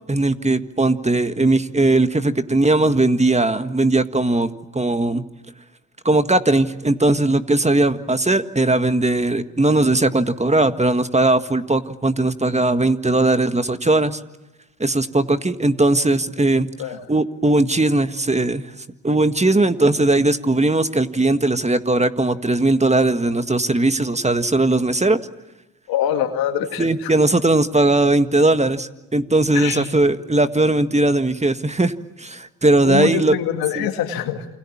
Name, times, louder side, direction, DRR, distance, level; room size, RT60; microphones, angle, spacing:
voice 1, 0.1-5.2 6.1-14.2 14.8-16.7 17.1-18.7 19.0-25.2 26.8-33.4 33.8-33.9, right 2 dB, 20° right, 10 dB, 1.7 m, -18 dB
voice 2, 25.9-27.1 29.5-29.9 32.8-34.5, left 10 dB, 90° left, 6 dB, 2.2 m, -24 dB
28.5 x 25.0 x 7.3 m, 1.0 s
supercardioid pair, 45°, 35 cm